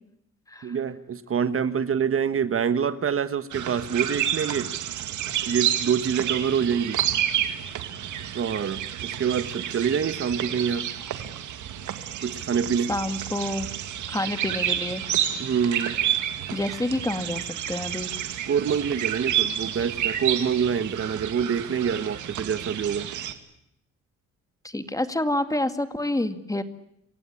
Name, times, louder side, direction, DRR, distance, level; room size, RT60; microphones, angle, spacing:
voice 1, 0.6-4.7 5.5-7.0 8.3-10.9 12.2-12.9 15.4-16.0 18.5-23.1, right 7 dB, 45° right, 12 dB, 1.4 m, -26 dB
sound 1, 3.5-23.3, right 11 dB, 75° right, 2.2 m, -30 dB
voice 2, 12.9-13.7 14.1-15.0 16.5-17.4 17.7-18.1 24.6-26.6, left 1 dB, 10° left, 9 dB, 2.1 m, -28 dB
27.5 x 16.0 x 9.9 m, 0.78 s
cardioid pair, 90°, 30 cm